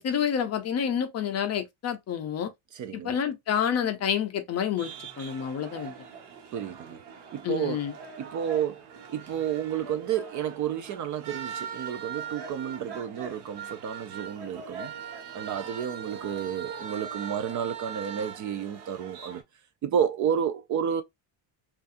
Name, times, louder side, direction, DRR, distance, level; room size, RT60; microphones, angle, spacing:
voice 1, 0.0-2.5 2.9-5.9 7.4-7.9, left 8 dB, 35° left, 0.5 m, -28 dB
voice 2, 2.7-3.2 6.5-7.0 7.3-7.8 8.2-14.9 15.3-19.4 19.8-21.0, right 8 dB, 40° right, 0.4 m, -31 dB
sound 1, 4.8-19.4, right 6 dB, 60° right, 1.4 m, -41 dB
5.3 x 2.5 x 2.4 m
cardioid pair, 175°, 47 cm